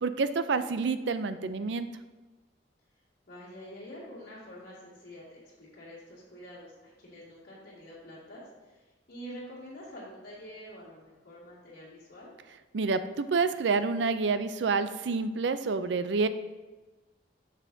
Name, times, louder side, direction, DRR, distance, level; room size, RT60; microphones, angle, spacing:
voice 1, 0.0-1.9 12.7-16.3, right 4 dB, 75° right, 11 dB, 0.5 m, -28 dB
voice 2, 3.3-8.8 9.1-12.3, equal, 60° left, -9 dB, 2.5 m, -47 dB
9.7 x 6.4 x 2.7 m, 1.2 s
head